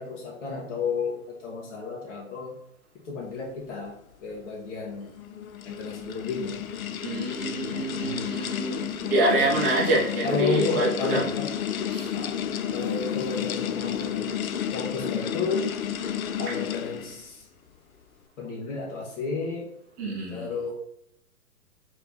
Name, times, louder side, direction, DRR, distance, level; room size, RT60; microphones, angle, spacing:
voice 1, 0.0-2.5 3.0-3.9 4.2-5.1 5.6-6.6 7.7-8.4 9.2-9.5 10.2-11.5 12.1-12.3 12.7-14.3 14.7-15.7 16.4-17.5 18.4-19.7 20.3-20.7, left 4 dB, 50° left, -2 dB, 1.6 m, -32 dB
sound 1, 5.0-17.2, left 9 dB, 70° left, 0.5 m, -31 dB
voice 2, 7.0-11.3 11.9-12.1 16.4-16.6 20.0-20.5, right 1 dB, 10° right, -4 dB, 0.5 m, -26 dB
3.4 x 3.4 x 4.0 m, 0.75 s
figure-of-eight pair, 125°, 44 cm